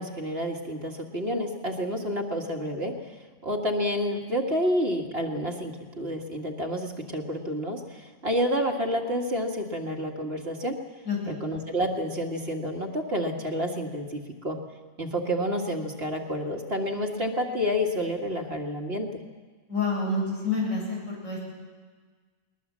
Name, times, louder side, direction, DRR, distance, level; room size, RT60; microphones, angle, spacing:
voice 1, 0.0-3.2 3.4-10.8 11.3-14.6 15.0-19.1, equal, 50° right, 2 dB, 2.1 m, -29 dB
voice 2, 11.0-11.4 19.7-21.5, left 3 dB, 70° left, -3 dB, 8.1 m, -28 dB
21.0 x 21.0 x 7.4 m, 1.5 s
omnidirectional pair, 1.4 m